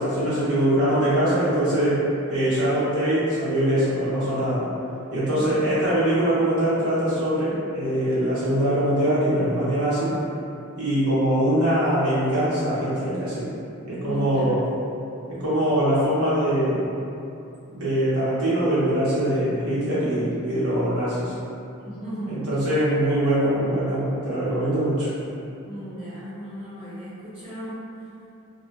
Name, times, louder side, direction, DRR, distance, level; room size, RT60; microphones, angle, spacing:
voice 1, 0.0-2.0 2.3-4.7 5.1-10.1 10.8-13.5 13.8-14.6 15.3-16.9 17.7-21.3 22.3-25.1, right 1 dB, 85° right, -11 dB, 0.7 m, -22 dB
voice 2, 5.3-5.7 14.0-14.6 21.8-22.3 25.6-27.8, equal, 25° right, -12 dB, 1.0 m, -36 dB
2.1 x 2.1 x 2.8 m, 2.7 s
head